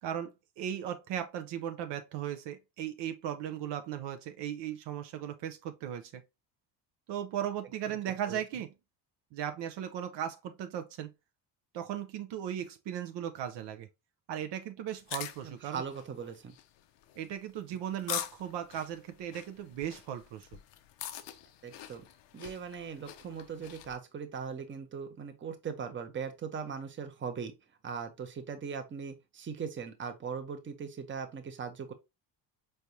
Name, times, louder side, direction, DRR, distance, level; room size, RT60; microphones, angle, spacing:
voice 1, 0.0-6.2 7.1-8.7 9.3-11.1 11.7-13.9 14.3-15.8 17.2-20.6, right 10 dB, 65° right, 0.6 m, -37 dB
sound 1, 14.9-24.0, left 11 dB, 65° left, 0.7 m, -44 dB
voice 2, 15.4-16.5 21.6-22.0 22.3-27.5 27.8-31.9, right 6 dB, 25° right, 0.8 m, -39 dB
4.6 x 3.3 x 2.6 m
cardioid pair, 110°, 46 cm